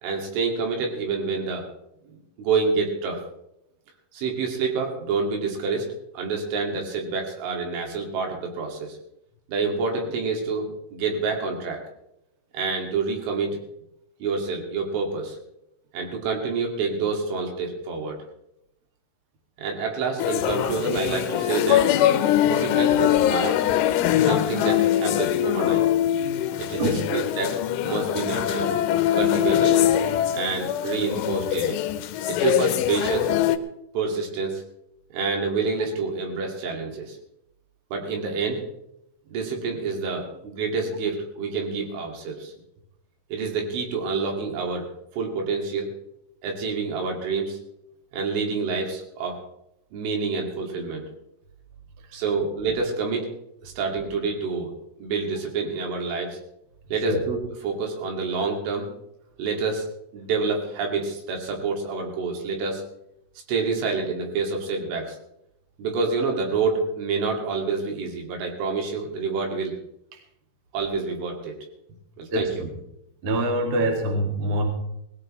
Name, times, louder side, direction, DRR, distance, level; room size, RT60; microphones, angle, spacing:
voice 1, 0.0-1.7 2.4-3.2 4.1-5.9 6.1-9.0 9.5-11.8 12.5-13.6 14.2-15.4 15.9-18.2 19.6-21.9 22.4-23.6 24.2-25.8 26.6-28.7 29.1-29.8 30.2-31.8 32.3-33.3 33.9-34.6 35.1-37.2 37.9-38.6 39.3-42.5 43.3-44.9 45.2-45.9 46.4-47.6 48.1-49.4 49.9-51.0 52.1-53.3 53.6-54.7 55.0-56.4 56.9-58.9 59.4-59.9 60.1-62.8 63.5-65.2 65.8-69.7 70.7-71.5 72.2-72.5, right 4 dB, 75° right, 1 dB, 4.7 m, -27 dB
sound 1, 20.2-33.6, left 11 dB, 80° left, 3.1 m, -22 dB
voice 2, 26.7-27.0 57.0-57.2 72.3-72.7 73.2-74.7, right 1 dB, 40° right, 2 dB, 2.5 m, -25 dB
19.5 x 16.5 x 3.3 m, 0.80 s
omnidirectional pair, 5.7 m